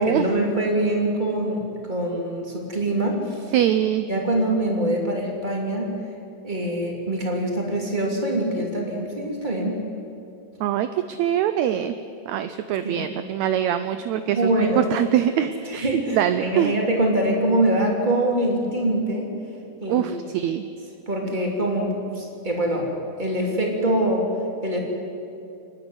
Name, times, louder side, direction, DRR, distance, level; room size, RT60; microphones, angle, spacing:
voice 1, 0.0-3.5 4.1-5.9 6.4-9.8 12.8-13.1 14.4-14.8 15.7-19.3 19.8-20.1 21.1-22.9 23.2-24.3 24.6-24.8, right 1 dB, 15° right, 0 dB, 2.9 m, -24 dB
voice 2, 3.5-4.1 10.6-11.9 12.3-16.7 19.9-20.6 21.2-21.3, right 11 dB, 80° right, 10 dB, 1.7 m, -23 dB
29.0 x 9.8 x 9.7 m, 2.6 s
omnidirectional pair, 3.8 m